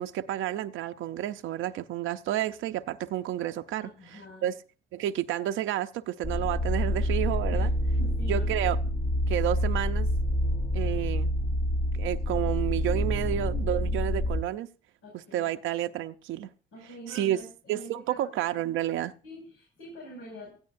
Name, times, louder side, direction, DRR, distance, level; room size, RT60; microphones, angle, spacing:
voice 1, 0.0-4.6 4.9-7.7 8.3-8.8 9.3-10.1 10.7-11.3 11.9-14.7 15.3-16.5 17.1-17.4 17.7-19.1, right 12 dB, 85° right, 0.6 m, -30 dB
voice 2, 3.8-4.5 7.5-8.5 15.0-15.5 16.7-18.4 19.2-20.6, equal, 90° left, 6.1 m, -45 dB
sound 1, 6.2-14.4, left 1 dB, 50° left, 3.9 m, -27 dB
17.5 x 14.0 x 2.6 m
cardioid pair, 90°, 20 cm